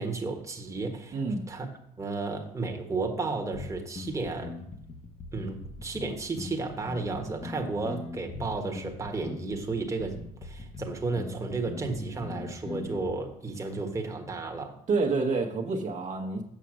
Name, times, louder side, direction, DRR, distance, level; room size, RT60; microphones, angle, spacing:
voice 1, 0.0-1.7 2.0-4.6 5.3-14.8, right 3 dB, 20° right, 1.4 m, -33 dB
voice 2, 1.1-1.4 14.9-16.4, right 3 dB, 55° right, 1.3 m, -28 dB
sound 1, 3.5-13.1, left 3 dB, 35° left, 1.2 m, -40 dB
7.5 x 5.7 x 6.2 m
cardioid pair, 90°, 15 cm